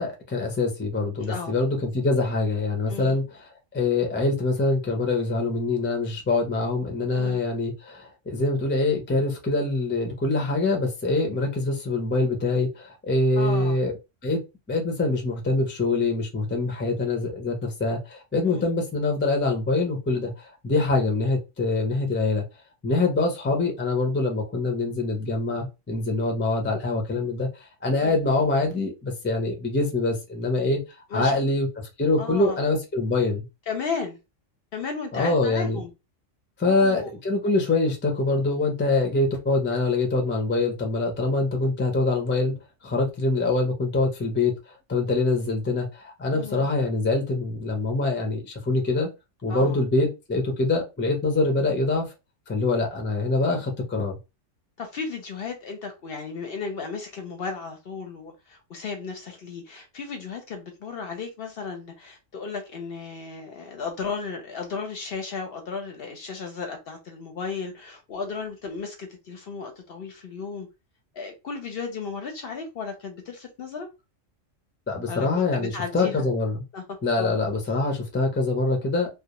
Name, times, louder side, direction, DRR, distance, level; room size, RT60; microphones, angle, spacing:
voice 1, 0.0-3.2 3.7-13.9 14.2-14.4 14.7-22.4 22.8-30.8 31.1-31.7 32.0-33.5 35.1-35.8 36.6-42.5 42.8-44.5 44.9-49.1 49.4-52.1 52.5-54.1 74.9-76.6 77.0-79.1, left 3 dB, 20° left, 0.3 m, -24 dB
voice 2, 1.2-1.5 2.9-3.2 7.1-7.4 13.4-13.8 18.4-18.7 28.0-28.2 31.1-31.4 32.2-32.6 33.7-34.2 34.7-35.9 36.6-37.1 46.3-46.7 49.5-49.8 54.8-70.7 71.1-73.9 75.1-76.2 76.7-76.8 77.2-77.4, left 5 dB, 60° left, 0.7 m, -34 dB
2.3 x 2.1 x 2.9 m
omnidirectional pair, 1.3 m